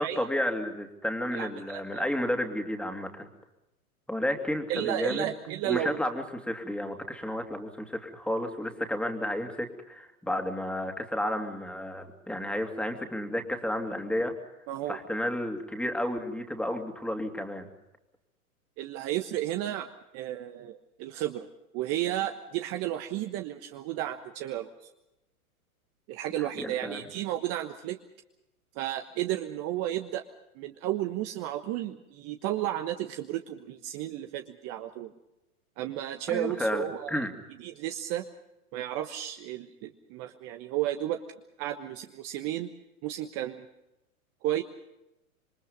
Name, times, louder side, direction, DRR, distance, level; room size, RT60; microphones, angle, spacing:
voice 1, 0.0-3.3 4.1-5.3 5.7-14.3 14.9-17.7 26.4-27.0 36.3-37.3, left 1 dB, ahead, 4 dB, 2.7 m, -32 dB
voice 2, 1.3-2.0 4.7-6.0 14.7-15.0 18.8-19.9 20.1-21.5 21.7-24.9 26.1-28.0 28.8-30.2 30.6-35.1 35.8-37.3 37.6-38.2 38.7-41.2 41.6-42.7 43.0-43.7 44.4-44.6, right 13 dB, 35° right, 6 dB, 1.3 m, -33 dB
27.0 x 23.0 x 5.4 m, 0.92 s
hypercardioid pair, 110°, 44 cm